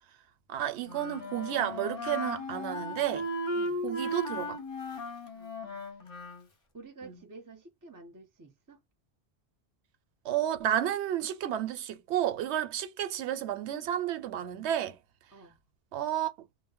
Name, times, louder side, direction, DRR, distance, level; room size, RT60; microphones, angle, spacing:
voice 1, 0.5-3.3 3.8-4.6 7.1-7.2 10.2-15.0 15.9-16.3, right 11 dB, 90° right, 0.8 m, -31 dB
Wind instrument woodwind instrument, 0.8-6.5, left 1 dB, 35° left, 0.7 m, -36 dB
voice 2, 5.3-5.9 6.7-8.8 15.3-15.6, right 3 dB, 25° right, 0.5 m, -50 dB
2.1 x 2.0 x 3.5 m
omnidirectional pair, 1.1 m